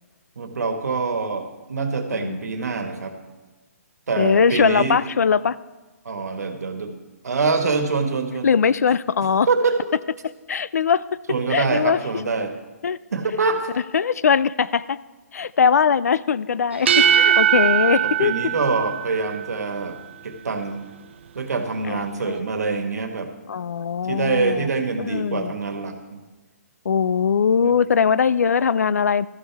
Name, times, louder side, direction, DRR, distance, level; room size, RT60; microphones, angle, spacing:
voice 1, 0.4-3.1 4.1-5.0 6.0-6.9 7.2-8.5 9.2-9.8 11.3-12.5 13.1-13.7 18.0-20.0 20.2-20.9 21.3-23.3 24.1-26.2 27.6-27.7, right 4 dB, 90° right, 6 dB, 1.6 m, -25 dB
voice 2, 4.2-5.6 8.4-9.5 10.5-11.0 11.5-12.0 12.8-13.0 13.7-15.0 15.3-18.3 21.9-22.4 23.5-24.7 25.0-25.5 26.8-29.3, left 6 dB, 80° left, 19 dB, 0.4 m, -21 dB
sound 1, 16.7-19.5, right 9 dB, 45° right, 0.5 m, -20 dB
13.5 x 11.5 x 3.5 m, 1.2 s
hypercardioid pair, 170°, 8 cm